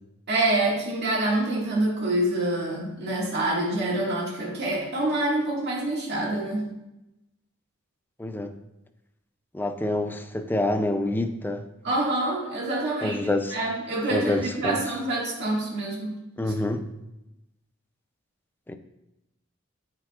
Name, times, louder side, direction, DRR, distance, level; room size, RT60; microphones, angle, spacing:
voice 1, 0.3-6.7 11.8-16.2, right 2 dB, 55° right, -4 dB, 2.0 m, -26 dB
voice 2, 8.2-8.5 9.5-11.7 13.0-13.6 14.1-14.8 16.4-16.9 18.7-18.8, left 1 dB, 10° left, 7 dB, 0.4 m, -27 dB
12.5 x 4.7 x 2.4 m, 0.94 s
head